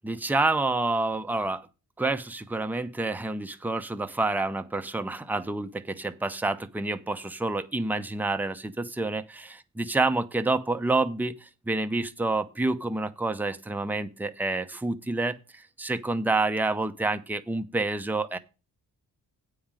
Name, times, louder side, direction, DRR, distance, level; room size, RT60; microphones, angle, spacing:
voice 1, 0.0-1.7 2.0-18.4, right 2 dB, 5° right, 10 dB, 0.7 m, -28 dB
8.6 x 5.1 x 7.2 m, 0.31 s
cardioid pair, 105°, 37 cm